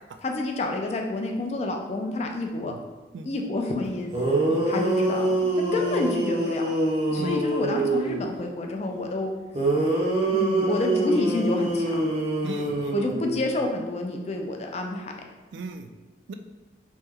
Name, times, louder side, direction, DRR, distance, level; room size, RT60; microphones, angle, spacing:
voice 1, 0.2-2.7 3.2-4.1 4.7-6.7 7.1-9.3 10.3-12.0 12.9-15.1, left 2 dB, 35° left, 2 dB, 0.3 m, -29 dB
sound 1, 3.8-3.9 4.1-8.3 9.5-13.6, right 2 dB, 35° right, 0.5 m, -25 dB
voice 2, 12.4-12.9 15.5-15.9 16.3-16.4, right 3 dB, 90° right, 7 dB, 0.3 m, -36 dB
3.0 x 2.2 x 3.5 m, 1.2 s
head